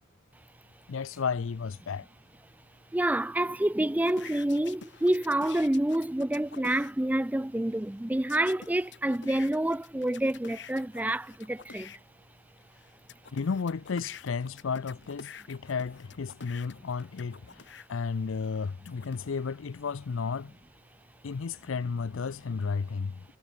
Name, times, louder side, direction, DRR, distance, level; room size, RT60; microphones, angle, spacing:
voice 1, 0.9-2.1 13.3-17.6 17.9-20.5 21.2-23.2, left 5 dB, 75° left, 0.5 m, -33 dB
voice 2, 2.9-12.0, right 1 dB, 10° right, 0.4 m, -28 dB
sound 1, 4.0-6.9 8.3-12.0 12.6-17.9 18.4-19.3, left 6 dB, 60° left, 1.6 m, -48 dB
head